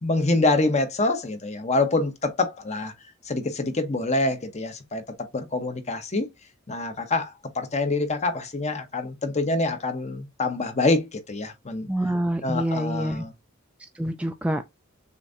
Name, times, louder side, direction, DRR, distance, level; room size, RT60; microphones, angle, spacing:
voice 1, 0.0-2.9 3.3-5.0 5.3-6.3 6.7-11.9 12.4-13.3, left 2 dB, 30° left, 0.8 m, -26 dB
voice 2, 11.9-13.2 14.0-14.6, right 1 dB, 5° right, 0.3 m, -26 dB
6.8 x 2.6 x 2.5 m
head